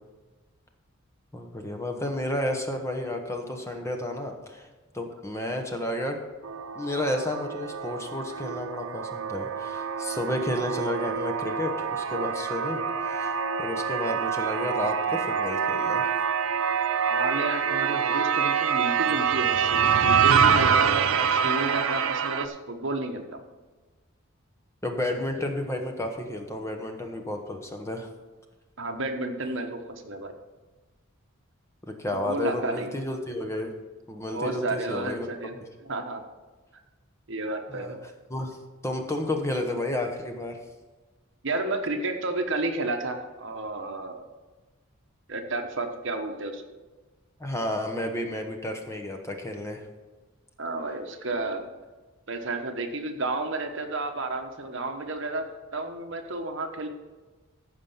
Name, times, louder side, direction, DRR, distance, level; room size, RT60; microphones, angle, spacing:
voice 1, 1.3-4.7 4.9-6.2 6.7-13.3 13.6-16.1 24.8-28.1 32.0-33.7 34.1-35.3 37.7-37.9 38.3-38.6 38.8-40.6 47.4-49.8, left 1 dB, 15° left, 4 dB, 1.0 m, -31 dB
sound 1, 6.4-22.5, right 7 dB, 75° right, 0.6 m, -26 dB
voice 2, 17.0-23.4 28.8-29.8 30.0-30.3 32.3-32.9 34.3-35.6 35.8-36.2 37.3-38.0 41.4-44.3 45.3-46.6 50.6-51.7 52.3-56.9, right 2 dB, 60° right, 5 dB, 1.2 m, -31 dB
15.0 x 5.4 x 5.7 m, 1.3 s
head